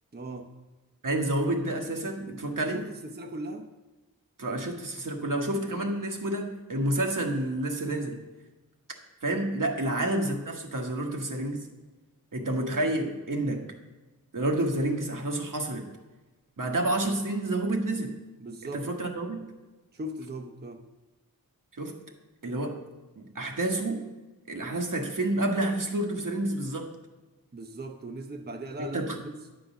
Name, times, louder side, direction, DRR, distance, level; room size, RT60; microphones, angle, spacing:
voice 1, 0.1-0.5 2.6-3.7 9.9-10.1 18.4-18.9 19.9-20.8 27.5-29.3, right 1 dB, 30° right, 5 dB, 0.7 m, -39 dB
voice 2, 1.0-2.8 4.4-8.2 9.2-11.7 12.3-13.7 14.3-15.9 16.6-18.1 18.7-19.4 21.8-21.9 22.4-22.8 23.2-24.1 24.5-26.9 28.8-29.2, right 1 dB, 65° right, 2 dB, 1.3 m, -29 dB
9.1 x 3.8 x 7.0 m, 1.1 s
cardioid pair, 45°, 35 cm